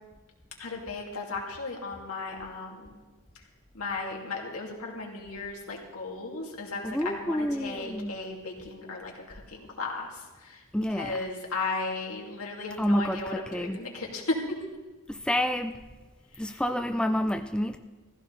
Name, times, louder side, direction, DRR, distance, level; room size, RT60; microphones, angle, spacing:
voice 1, 0.6-3.0 3.7-10.6 10.9-14.6 16.4-16.6, left 3 dB, 80° left, -1 dB, 2.6 m, -35 dB
voice 2, 6.8-8.2 10.7-11.2 12.8-13.8 15.1-15.7 16.4-17.8, equal, 5° left, 6 dB, 0.3 m, -28 dB
15.5 x 14.5 x 4.0 m, 1.2 s
head